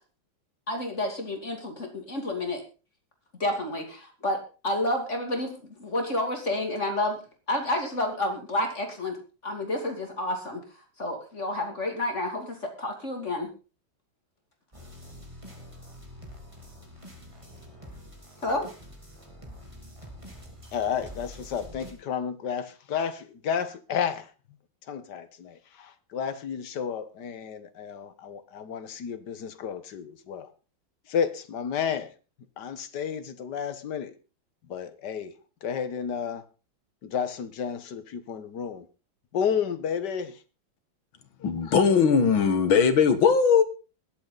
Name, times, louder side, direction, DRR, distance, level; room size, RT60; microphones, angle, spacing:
voice 1, 0.7-2.6 3.4-5.5 5.8-7.2 7.5-9.2 9.4-10.6 11.0-13.5 18.4-18.7, left 1 dB, 35° left, 2.9 m, -29 dB
sound 1, 14.7-21.9, equal, 15° right, 3.2 m, -46 dB
voice 2, 20.7-24.3 24.9-30.5 31.1-32.1 32.6-34.1 34.7-36.4 37.0-38.9 39.3-40.4 41.4-41.5, left 7 dB, 60° left, 1.7 m, -32 dB
voice 3, 41.4-43.6, left 6 dB, 75° left, 2.3 m, -20 dB
21.0 x 8.5 x 4.0 m
omnidirectional pair, 2.2 m